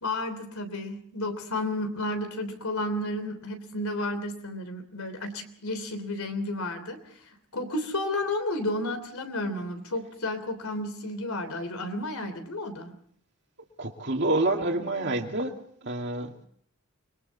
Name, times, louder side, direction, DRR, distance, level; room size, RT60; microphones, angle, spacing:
voice 1, 0.0-7.0 7.5-12.9, left 1 dB, 80° left, 9 dB, 3.2 m, -32 dB
voice 2, 13.8-15.6 15.8-16.4, right 2 dB, 55° right, 2 dB, 2.3 m, -28 dB
28.5 x 22.0 x 4.1 m, 0.62 s
head